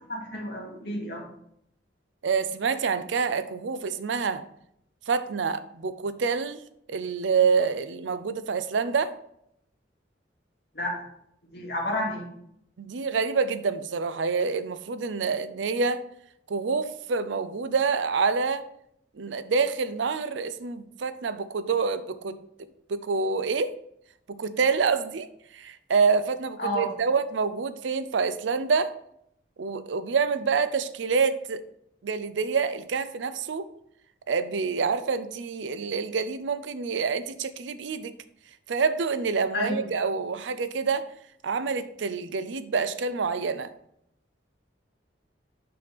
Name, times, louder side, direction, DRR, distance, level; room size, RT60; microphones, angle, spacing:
voice 1, 0.1-1.3 10.7-10.9 11.5-12.3 26.6-26.9 39.5-39.8, left 1 dB, 65° left, -2 dB, 2.2 m, -30 dB
voice 2, 2.2-4.4 5.1-6.6 6.9-9.1 12.8-16.0 16.5-18.7 19.1-22.4 22.9-23.7 24.3-28.9 29.6-31.6 32.0-33.7 34.3-38.1 38.7-41.1 41.4-43.7, right 5 dB, 85° right, 13 dB, 0.5 m, -27 dB
6.7 x 5.9 x 3.4 m, 0.74 s
head